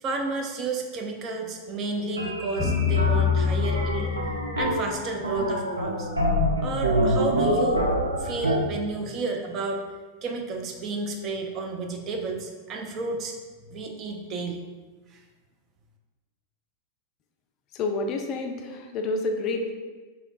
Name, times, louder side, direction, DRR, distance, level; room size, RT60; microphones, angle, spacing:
voice 1, 0.0-4.1 4.6-6.1 6.6-7.9 8.2-9.8 10.2-13.3 13.7-14.6, right 3 dB, 30° right, 2 dB, 0.5 m, -31 dB
sound 1, 2.2-8.6, equal, 80° right, 0.5 m, -26 dB
sound 2, 2.6-4.8, left 7 dB, ahead, 1.3 m, -25 dB
voice 2, 17.7-19.7, left 3 dB, 35° left, 4 dB, 0.4 m, -29 dB
3.3 x 2.9 x 3.8 m, 1.3 s
figure-of-eight pair, 90°, 0 cm